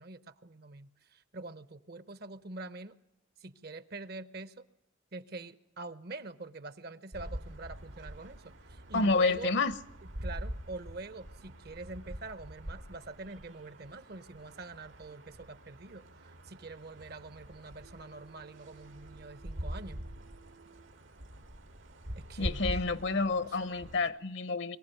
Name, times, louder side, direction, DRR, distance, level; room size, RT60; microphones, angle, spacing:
voice 1, 0.0-3.0 3.4-4.6 5.1-9.5 10.2-20.0 22.2-22.6 23.1-24.0, right 3 dB, 50° right, 14 dB, 0.9 m, -45 dB
sound 1, 7.1-24.1, equal, 85° right, 2.0 m, -44 dB
voice 2, 8.9-9.7 22.4-24.8, left 3 dB, 65° left, 16 dB, 0.8 m, -29 dB
23.0 x 16.0 x 9.1 m, 0.92 s
head